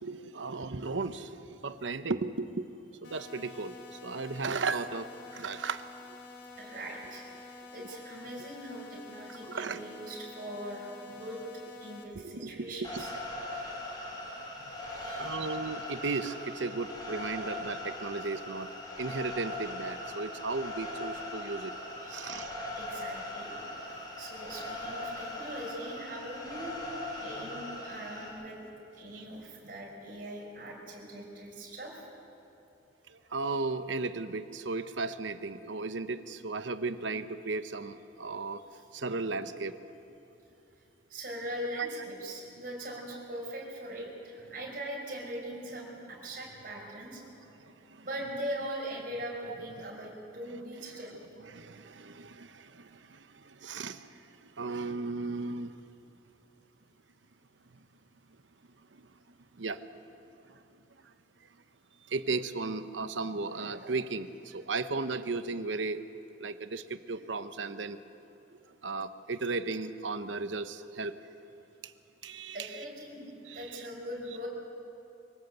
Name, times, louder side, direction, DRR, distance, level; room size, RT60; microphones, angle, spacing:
voice 1, 0.0-2.7 3.0-5.8 9.4-9.8 12.1-13.0 15.2-18.7 19.0-21.7 22.1-22.5 29.1-29.2 33.1-38.6 38.9-39.8 41.7-41.9 47.6-48.0 50.9-51.0 51.5-55.7 58.9-59.1 59.6-59.8 60.5-60.6 62.1-66.0 66.4-68.0 68.8-71.1 71.8-71.9 72.2-72.8 73.5-73.9, right 3 dB, 90° right, 11 dB, 0.9 m, -35 dB
sound 1, 3.0-12.0, left 3 dB, 85° left, 2.8 m, -49 dB
voice 2, 6.5-7.3 7.7-11.4 11.8-13.1 14.9-15.4 22.0-28.6 29.0-32.1 38.7-38.8 41.1-47.2 48.0-51.2 72.5-74.5, right 1 dB, 50° right, -2 dB, 5.7 m, -41 dB
sound 2, 12.8-28.3, left 1 dB, 25° left, 4.5 m, -40 dB
24.5 x 17.5 x 8.1 m, 2.8 s
head